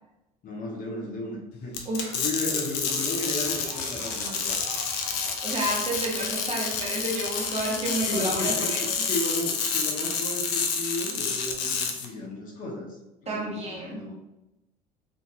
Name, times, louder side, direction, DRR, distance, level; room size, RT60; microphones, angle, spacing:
voice 1, 0.4-1.8 2.1-4.6 8.0-14.1, left 1 dB, 40° left, -1 dB, 0.8 m, -34 dB
sound 1, 1.7-12.0, left 6 dB, 60° left, 0.5 m, -29 dB
sound 2, 2.7-9.0, right 3 dB, 80° right, 0.5 m, -46 dB
sound 3, 3.4-8.7, left 2 dB, 10° left, 0.4 m, -46 dB
voice 2, 5.2-9.1 13.3-14.0, right 2 dB, 30° right, -2 dB, 0.9 m, -31 dB
2.9 x 2.1 x 2.6 m, 0.95 s
hypercardioid pair, 65°, 21 cm